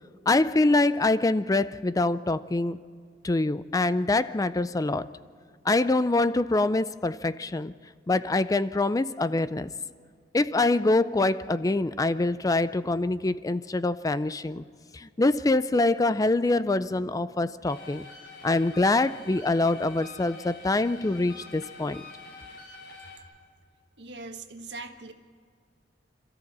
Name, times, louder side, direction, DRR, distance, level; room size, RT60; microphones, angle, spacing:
voice 1, 0.3-2.8 3.2-5.1 5.6-7.7 8.1-9.7 10.3-14.6 14.9-18.1 18.4-22.0, left 2 dB, 20° left, 14 dB, 0.4 m, -25 dB
sound 1, 17.7-23.2, left 3 dB, 75° left, 4.4 m, -46 dB
voice 2, 24.0-25.1, right 3 dB, 75° right, 6 dB, 1.5 m, -41 dB
27.0 x 14.0 x 7.4 m, 2.2 s
head